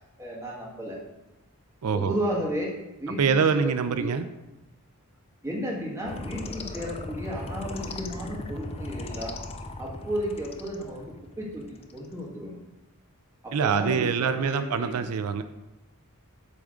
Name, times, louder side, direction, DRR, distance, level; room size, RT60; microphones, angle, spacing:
voice 1, 0.2-1.0 1.9-2.7 3.0-4.1 5.4-9.4 9.8-12.6 13.4-15.1, equal, 15° right, -5 dB, 1.8 m, -33 dB
voice 2, 1.8-2.2 3.2-4.3 13.5-15.4, right 6 dB, 90° right, 10 dB, 0.4 m, -25 dB
sound 1, 6.0-12.1, left 2 dB, 25° left, 0.5 m, -38 dB
8.4 x 3.6 x 6.4 m, 1.0 s
head